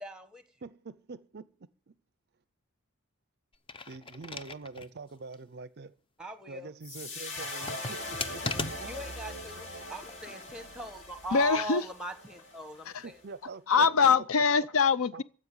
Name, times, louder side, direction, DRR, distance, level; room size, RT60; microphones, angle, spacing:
voice 1, 0.0-0.4 6.2-6.7 8.8-13.2, right 2 dB, 5° right, 1.3 m, -40 dB
voice 2, 0.6-2.0 3.9-6.0 6.5-8.9 13.0-14.3 14.6-14.7 15.1-15.2, right 4 dB, 50° right, 0.5 m, -45 dB
sound 1, 3.5-4.9 5.3-5.4 7.4-9.1 10.0-10.5, left 3 dB, 25° left, 0.6 m, -38 dB
sound 2, 6.8-13.1, left 2 dB, 55° left, 2.9 m, -41 dB
voice 3, 11.3-11.8 12.9-13.0 13.7-15.2, left 5 dB, 70° left, 0.6 m, -23 dB
15.5 x 5.3 x 9.7 m
head